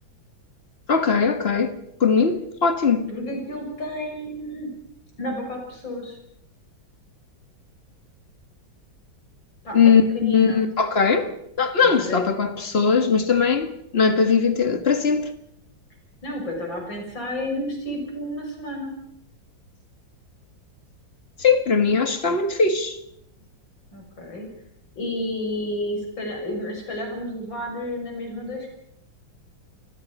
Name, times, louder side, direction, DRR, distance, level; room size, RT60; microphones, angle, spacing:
voice 1, 0.9-1.7 2.0-3.1 9.7-11.3 11.6-15.3 21.4-23.0, left 5 dB, 30° left, 1.8 m, -20 dB
voice 2, 3.1-4.7 5.2-6.2 9.6-10.6 11.8-12.2 16.2-19.0 23.9-24.5 25.0-28.7, left 1 dB, 70° left, 7.2 m, -31 dB
28.0 x 21.0 x 5.6 m
omnidirectional pair, 2.1 m